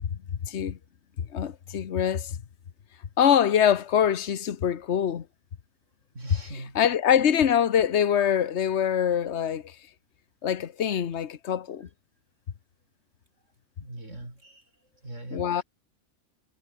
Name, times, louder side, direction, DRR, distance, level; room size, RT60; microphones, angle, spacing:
voice 1, 0.1-0.8 1.2-2.4 3.2-5.3 6.7-9.8 10.4-11.9 15.3-15.6, left 9 dB, 65° left, 1.3 m, -24 dB
voice 2, 6.1-6.8 13.8-14.7 15.0-15.6, right 1 dB, 85° right, 7.3 m, -41 dB
omnidirectional pair, 1.2 m